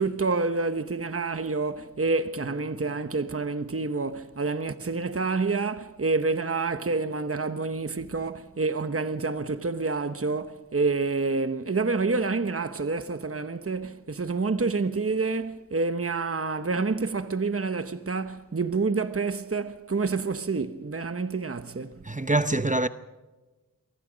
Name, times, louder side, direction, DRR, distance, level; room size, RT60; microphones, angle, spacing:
voice 1, 0.0-22.0, right 4 dB, 40° right, 1.1 m, -28 dB
voice 2, 22.0-22.9, right 2 dB, 20° right, 0.8 m, -24 dB
28.0 x 23.0 x 5.2 m
wide cardioid pair, 65°, 34 cm